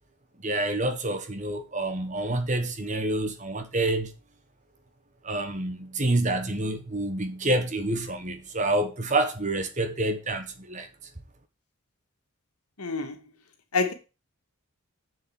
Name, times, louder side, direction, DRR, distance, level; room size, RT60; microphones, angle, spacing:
voice 1, 0.4-4.1 5.2-10.9, right 2 dB, 35° right, 1.4 m, -28 dB
voice 2, 12.8-13.2 13.7-13.9, left 4 dB, 85° left, 2.1 m, -27 dB
7.0 x 7.0 x 7.7 m
head